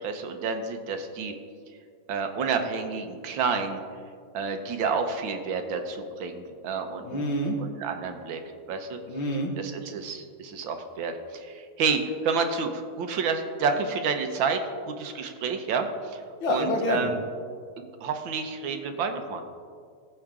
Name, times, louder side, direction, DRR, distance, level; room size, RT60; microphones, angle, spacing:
voice 1, 0.0-1.3 2.1-3.8 4.3-7.3 7.8-8.4 8.7-9.0 9.6-16.2 16.5-17.2 17.8-19.4, right 5 dB, 75° right, 6 dB, 1.7 m, -29 dB
voice 2, 7.0-7.6 9.1-9.5 16.4-17.1, left 1 dB, 80° left, 2 dB, 2.3 m, -27 dB
18.0 x 7.8 x 3.7 m, 2.1 s
omnidirectional pair, 2.2 m